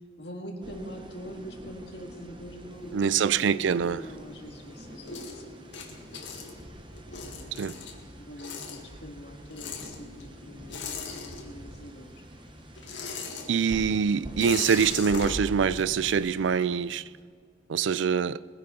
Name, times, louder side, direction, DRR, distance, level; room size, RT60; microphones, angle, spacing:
voice 1, 0.2-6.2 7.1-12.2 13.2-13.9, equal, 65° left, 2.0 m, -44 dB
sound 1, 0.6-16.3, right 1 dB, 25° right, 1.0 m, -45 dB
sound 2, 2.7-4.3 4.7-11.9 12.1-16.8, left 5 dB, 80° left, 1.9 m, -40 dB
voice 2, 2.9-4.0 7.5-7.8 13.5-17.0 17.7-18.4, right 6 dB, 90° right, 0.4 m, -24 dB
21.0 x 10.5 x 4.3 m
head